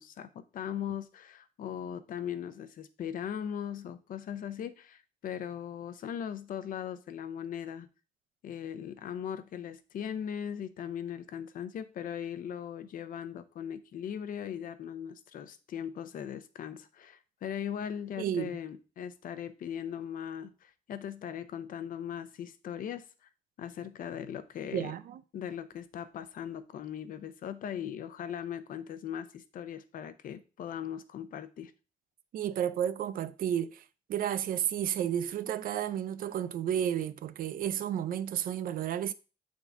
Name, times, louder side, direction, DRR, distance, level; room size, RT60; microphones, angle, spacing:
voice 1, 0.0-7.9 8.4-23.3 23.6-24.9 25.3-31.7, left 9 dB, 70° left, 0.6 m, -39 dB
voice 2, 18.2-18.5 24.7-25.2 32.3-33.8 34.1-39.1, right 10 dB, 75° right, 0.4 m, -32 dB
8.1 x 3.7 x 3.6 m
wide cardioid pair, 175°, 15 cm